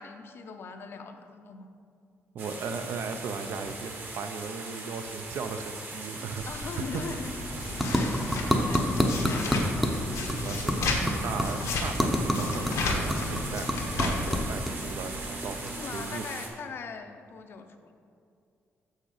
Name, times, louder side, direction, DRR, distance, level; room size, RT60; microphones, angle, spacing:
voice 1, 0.0-1.7 6.2-7.3 7.9-8.2 8.6-9.7 15.8-17.9, left 5 dB, 50° left, 6 dB, 0.6 m, -41 dB
voice 2, 2.3-7.2 8.3-8.4 10.3-16.3, right 5 dB, 65° right, 8 dB, 0.5 m, -37 dB
sound 1, 2.4-16.5, right 3 dB, 45° right, 1.1 m, -40 dB
sound 2, 6.4-14.5, left 3 dB, 85° left, 1.2 m, -33 dB
sound 3, 6.8-16.3, equal, ahead, 0.6 m, -30 dB
7.0 x 6.4 x 4.9 m, 2.5 s
wide cardioid pair, 170°, 5 cm